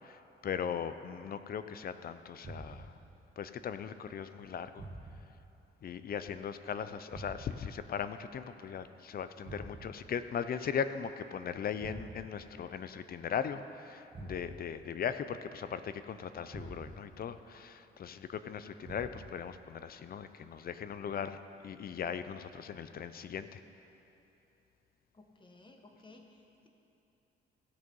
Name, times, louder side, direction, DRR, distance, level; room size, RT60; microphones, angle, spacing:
voice 1, 0.0-3.0 3.4-4.9 5.8-23.6, left 7 dB, 50° left, 11 dB, 0.6 m, -39 dB
sound 1, 2.4-3.0 4.8-5.4 7.1-7.7 9.4-10.1 11.8-12.4 14.1-14.8 16.5-17.1 18.8-19.4, right 2 dB, 30° right, 1.7 m, -47 dB
voice 2, 25.1-26.7, left 2 dB, 25° left, 3 dB, 1.3 m, -57 dB
16.5 x 6.3 x 5.5 m, 3.0 s
cardioid pair, 90°, 20 cm